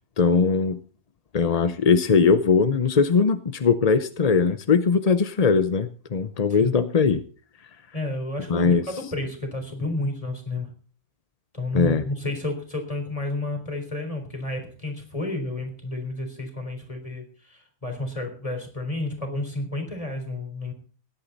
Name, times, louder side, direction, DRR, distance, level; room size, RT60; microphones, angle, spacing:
voice 1, 0.2-0.8 1.3-7.2 8.5-8.9 11.7-12.0, left 5 dB, 40° left, 11 dB, 0.5 m, -20 dB
voice 2, 7.9-10.7 11.5-20.7, left 2 dB, 20° left, 4 dB, 4.1 m, -31 dB
16.5 x 11.5 x 4.0 m, 0.39 s
omnidirectional pair, 1.6 m